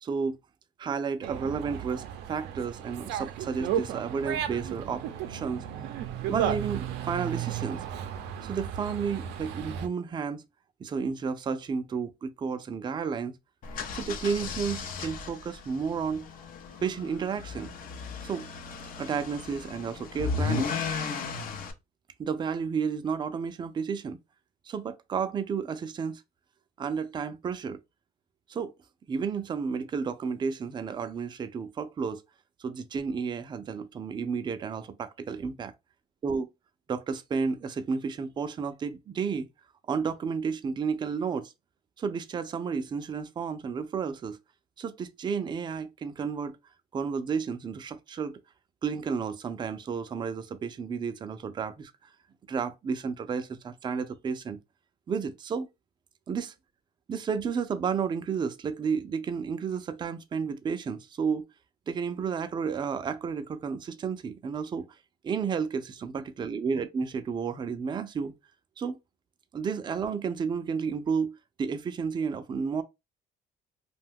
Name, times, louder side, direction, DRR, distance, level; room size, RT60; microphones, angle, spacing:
voice 1, 0.0-0.4 0.8-5.6 6.3-7.8 8.4-10.4 10.8-13.3 13.9-16.3 16.8-17.7 18.2-18.5 19.0-20.8 22.2-24.2 24.7-26.2 26.8-27.8 28.5-28.7 29.1-32.2 32.6-35.7 36.2-36.5 36.9-39.5 39.9-41.5 42.0-44.4 44.8-46.6 46.9-48.4 48.8-51.9 52.5-54.6 55.1-55.7 56.3-56.5 57.1-61.4 61.9-64.9 65.2-68.3 68.8-69.0 69.5-72.8, right 6 dB, 25° right, 0.4 m, -32 dB
Dog, 1.2-9.9, right 9 dB, 90° right, 0.5 m, -34 dB
sound 1, 13.6-21.7, left 5 dB, 55° left, 0.6 m, -35 dB
2.5 x 2.2 x 3.4 m
cardioid pair, 110°, 17 cm